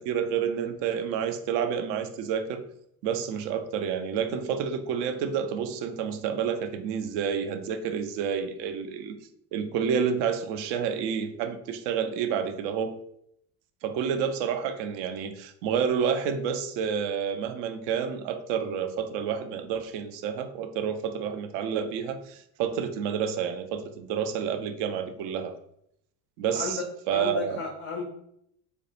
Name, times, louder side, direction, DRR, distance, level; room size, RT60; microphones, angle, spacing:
voice 1, 0.0-2.6 3.0-9.2 9.5-12.9 13.8-25.5 26.4-27.6, right 7 dB, 55° right, 7 dB, 0.5 m, -29 dB
voice 2, 26.5-26.8 27.1-28.0, left 4 dB, 25° left, 1 dB, 0.3 m, -33 dB
2.3 x 2.1 x 2.7 m, 0.72 s
hypercardioid pair, 65°, 50 cm